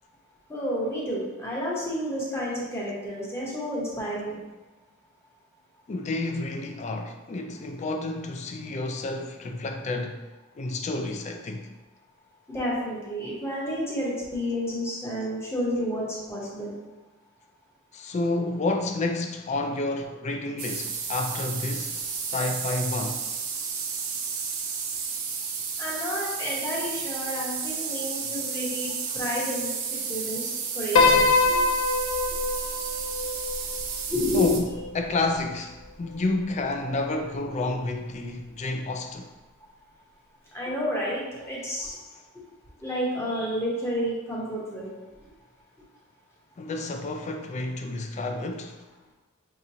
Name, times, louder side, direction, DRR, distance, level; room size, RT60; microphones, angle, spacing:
voice 1, 0.5-4.4 12.5-16.8 25.8-29.7 30.1-31.7 34.1-34.5 40.5-42.0 42.8-44.9, equal, 10° left, 0.9 m, -30 dB
voice 2, 5.9-10.2 10.6-11.7 17.9-23.3 29.1-29.2 34.3-39.3 46.6-48.8, left 2 dB, 35° left, 0.3 m, -30 dB
sound 1, 20.6-34.6, right 6 dB, 65° right, 0.5 m, -32 dB
Piano, 31.0-35.4, left 3 dB, 80° left, 0.6 m, -24 dB
4.9 x 2.9 x 2.7 m
head